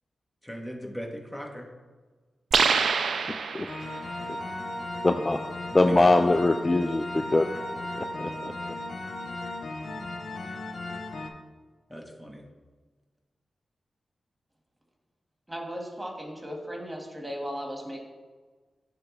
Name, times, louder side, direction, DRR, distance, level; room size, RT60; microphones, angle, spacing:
voice 1, 0.4-1.7 5.7-6.4 11.9-12.4, equal, 10° left, 1 dB, 1.3 m, -38 dB
sound 1, 2.5-4.1, right 5 dB, 80° right, 0.4 m, -25 dB
sound 2, 3.7-11.3, left 1 dB, 70° left, 0.6 m, -36 dB
voice 2, 5.0-5.4 5.7-7.5 8.0-8.3, left 2 dB, 30° left, 7 dB, 0.3 m, -22 dB
voice 3, 15.5-18.0, equal, 15° right, 0 dB, 1.8 m, -36 dB
9.9 x 3.4 x 3.3 m, 1.4 s
cardioid pair, 50°, 0 cm